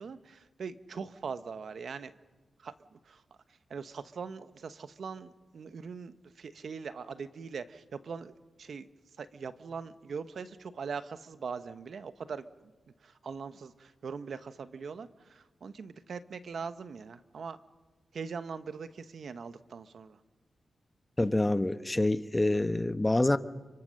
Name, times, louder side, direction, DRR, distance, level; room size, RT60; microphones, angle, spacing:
voice 1, 0.0-2.1 2.6-3.2 3.7-8.3 8.6-8.9 9.2-12.5 13.0-17.6 18.1-20.2, right 5 dB, 75° right, 12 dB, 1.1 m, -41 dB
voice 2, 21.2-23.4, left 2 dB, 20° left, 11 dB, 1.2 m, -26 dB
30.0 x 25.0 x 6.5 m, 1.3 s
cardioid pair, 60°, 0 cm